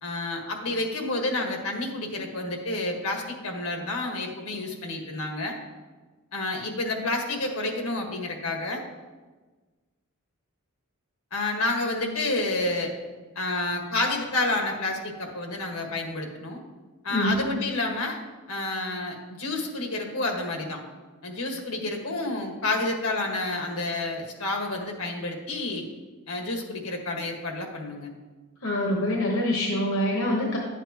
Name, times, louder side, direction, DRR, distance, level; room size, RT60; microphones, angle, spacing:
voice 1, 0.0-5.5 6.3-8.8 11.3-12.9 13.3-16.6 17.0-18.2 18.5-20.8 21.2-25.8 26.3-28.1, left 2 dB, 80° left, 2 dB, 1.5 m, -29 dB
voice 2, 28.6-30.6, left 1 dB, 65° left, -1 dB, 1.2 m, -25 dB
11.5 x 8.2 x 2.9 m, 1.3 s
head